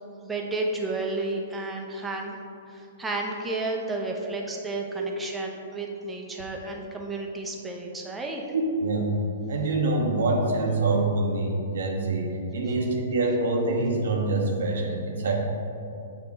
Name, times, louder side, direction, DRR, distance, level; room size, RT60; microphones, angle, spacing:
voice 1, 0.2-2.4 2.7-8.4, right 2 dB, 10° right, -1 dB, 0.7 m, -32 dB
voice 2, 8.5-9.2 9.5-15.3, right 2 dB, 60° right, -1 dB, 0.9 m, -25 dB
8.5 x 3.0 x 4.5 m, 2.6 s
figure-of-eight pair, 110°, 0 cm